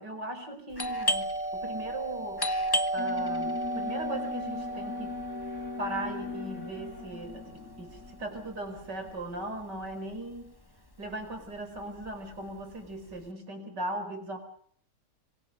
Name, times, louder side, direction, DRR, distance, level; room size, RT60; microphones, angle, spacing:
voice 1, 0.0-2.5 2.9-5.2 5.8-10.5 11.0-14.4, right 1 dB, 90° right, 8 dB, 5.5 m, -38 dB
Doorbell, 0.7-10.1 10.4-10.5 11.1-11.5 11.8-13.2, right 1 dB, 15° left, 1.3 m, -33 dB
Alarm, 3.0-10.1, left 5 dB, 65° left, 3.3 m, -40 dB
27.0 x 24.5 x 6.6 m, 0.63 s
omnidirectional pair, 1.8 m